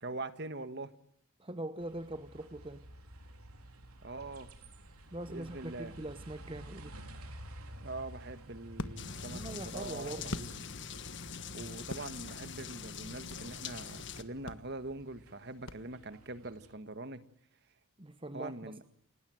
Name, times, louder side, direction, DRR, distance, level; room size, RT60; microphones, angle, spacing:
voice 1, 0.0-0.9 4.0-4.5 5.3-5.9 7.8-9.4 9.7-10.6 11.5-17.2 18.3-18.8, right 2 dB, 50° right, 1.6 m, -43 dB
voice 2, 1.4-2.9 5.1-7.0 9.3-10.4 18.0-18.8, right 1 dB, 25° right, 1.0 m, -42 dB
sound 1, 1.8-16.8, right 1 dB, 90° right, 3.6 m, -52 dB
sound 2, 7.6-11.1 11.4-13.6 14.0-14.1 14.4-16.3, left 2 dB, 75° left, 1.5 m, -45 dB
sound 3, 9.0-14.2, left 6 dB, 55° left, 1.5 m, -44 dB
29.5 x 17.0 x 9.3 m
head